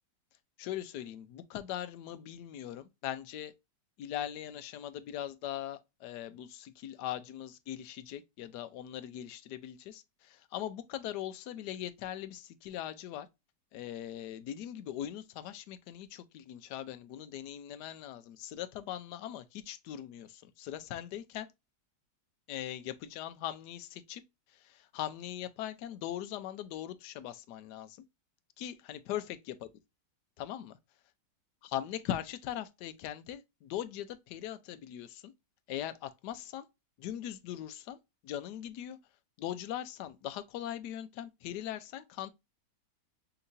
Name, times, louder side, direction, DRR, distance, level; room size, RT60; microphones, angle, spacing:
voice 1, 0.6-3.5 4.0-13.3 13.7-21.5 22.5-24.2 24.5-28.0 28.6-29.7 30.4-30.8 31.6-35.3 35.7-36.7 37.0-38.0 38.2-39.0 39.4-42.3, left 11 dB, 70° left, 1.2 m, -40 dB
5.5 x 2.9 x 2.5 m
omnidirectional pair, 2.0 m